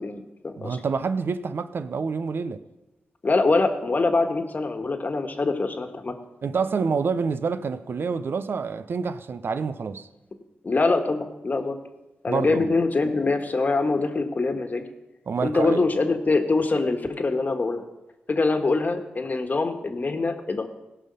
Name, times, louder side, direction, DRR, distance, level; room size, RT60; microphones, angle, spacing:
voice 1, 0.0-0.8 3.2-6.1 10.6-11.8 12.2-14.8 15.4-17.9 18.3-20.7, left 3 dB, 45° left, 1.4 m, -24 dB
voice 2, 0.6-2.6 6.4-10.1 12.3-12.7 15.3-15.9, right 5 dB, 60° right, 0.6 m, -27 dB
17.0 x 5.7 x 5.5 m
cardioid pair, 50°, 4 cm